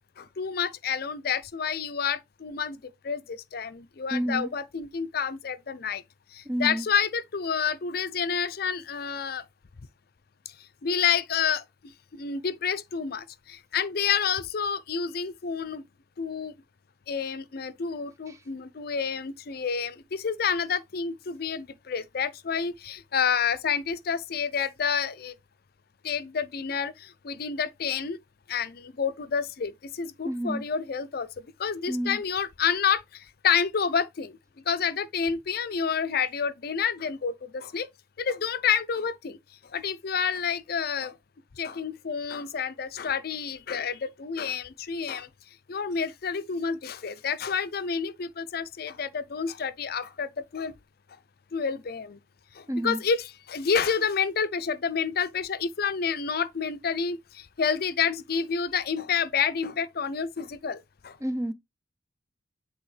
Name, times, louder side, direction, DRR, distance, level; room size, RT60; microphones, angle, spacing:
voice 1, 0.2-2.8 3.0-6.0 6.3-9.4 10.8-11.6 12.1-15.8 16.2-16.5 17.1-25.3 26.0-28.2 28.5-31.3 31.6-34.3 34.7-37.9 38.2-39.4 39.7-41.1 41.6-45.3 45.7-50.7 51.5-52.2 52.5-61.2, left 6 dB, 55° left, 0.5 m, -29 dB
voice 2, 4.1-4.5 6.5-6.9 18.3-18.4 30.2-30.6 31.9-32.2 52.7-53.0 61.2-61.5, right 1 dB, 15° right, 0.5 m, -29 dB
8.3 x 3.6 x 3.2 m
head